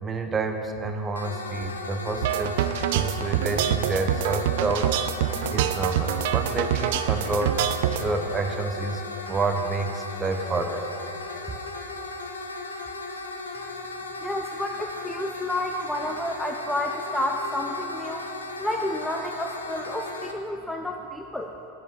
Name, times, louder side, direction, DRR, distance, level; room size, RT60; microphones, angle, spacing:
voice 1, 0.0-2.6 2.9-4.9 5.5-7.6 8.0-9.0 9.3-10.8, right 3 dB, 20° right, 6 dB, 0.8 m, -29 dB
sound 1, 1.2-20.3, left 2 dB, 80° left, 0.8 m, -36 dB
sound 2, 2.2-8.0, right 11 dB, 55° right, 0.4 m, -25 dB
voice 2, 14.2-18.2 18.6-21.5, left 1 dB, 5° left, 3 dB, 0.6 m, -30 dB
9.1 x 7.3 x 7.5 m, 3.0 s
figure-of-eight pair, 85°, 0 cm